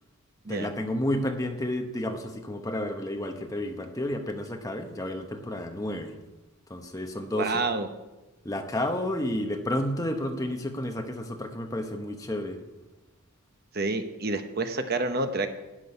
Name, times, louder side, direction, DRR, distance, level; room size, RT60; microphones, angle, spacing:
voice 1, 0.5-6.2 6.7-7.6 8.4-12.6, left 1 dB, 15° left, 4 dB, 1.0 m, -31 dB
voice 2, 7.3-7.9 13.7-15.5, right 3 dB, 45° right, 7 dB, 0.9 m, -28 dB
12.5 x 6.1 x 9.6 m, 1.1 s
head